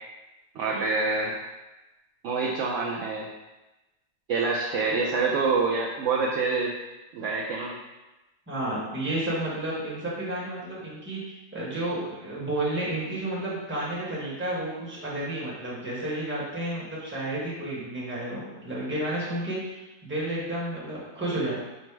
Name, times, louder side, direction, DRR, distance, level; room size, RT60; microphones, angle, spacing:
voice 1, 0.6-1.3 2.2-3.3 4.3-6.7 7.1-7.7, right 4 dB, 70° right, -2 dB, 0.8 m, -26 dB
voice 2, 8.5-21.6, right 1 dB, 10° right, -7 dB, 0.9 m, -31 dB
5.2 x 2.0 x 4.5 m, 1.1 s
omnidirectional pair, 1.6 m